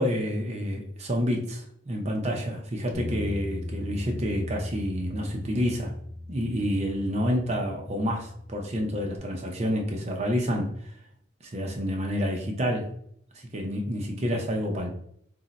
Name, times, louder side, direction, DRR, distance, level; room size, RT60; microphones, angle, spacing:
voice 1, 0.0-5.9 6.3-10.7 11.4-12.9 13.5-14.9, equal, 35° right, 2 dB, 0.5 m, -28 dB
Bass guitar, 2.9-9.2, left 1 dB, 15° left, 0.4 m, -38 dB
2.6 x 2.1 x 3.9 m, 0.68 s
head